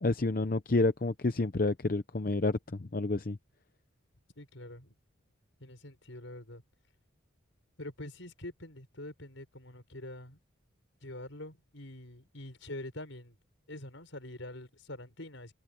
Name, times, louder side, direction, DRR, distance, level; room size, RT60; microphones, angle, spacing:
voice 1, 0.0-3.4, left 2 dB, 45° left, 0.7 m, -29 dB
voice 2, 4.4-4.9 5.6-6.6 7.8-10.4 11.0-13.4 13.7-15.5, left 1 dB, 70° left, 5.9 m, -45 dB
head